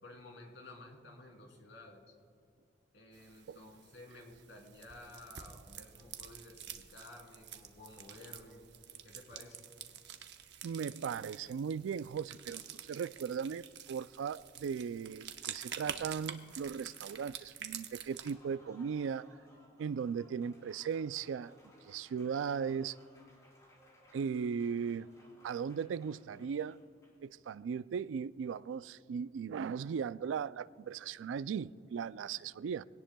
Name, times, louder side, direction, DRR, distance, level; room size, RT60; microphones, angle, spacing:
voice 1, 0.0-2.2 2.9-8.7 9.0-9.7, left 2 dB, 75° left, 3.0 m, -53 dB
sound 1, 3.1-18.3, right 8 dB, 60° right, 0.9 m, -48 dB
voice 2, 10.6-19.3 19.8-21.5 21.9-23.0 24.1-25.1 25.4-26.8 27.2-32.8, right 6 dB, 90° right, 0.3 m, -37 dB
Applause, 18.0-27.4, equal, 20° left, 3.1 m, -63 dB
22.5 x 17.5 x 2.3 m
head